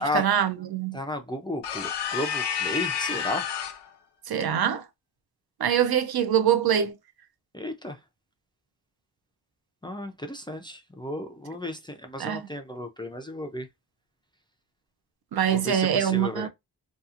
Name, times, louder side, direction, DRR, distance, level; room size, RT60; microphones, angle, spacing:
voice 1, 0.0-1.0 4.3-4.8 5.6-6.9 12.2-12.5 15.3-16.5, right 9 dB, 60° right, 0.5 m, -24 dB
voice 2, 0.9-3.5 7.5-8.0 9.8-13.7 15.5-16.5, left 1 dB, 10° left, 0.4 m, -33 dB
sound 1, 1.6-3.9, left 8 dB, 70° left, 0.6 m, -30 dB
2.8 x 2.3 x 2.4 m
wide cardioid pair, 95°, 43 cm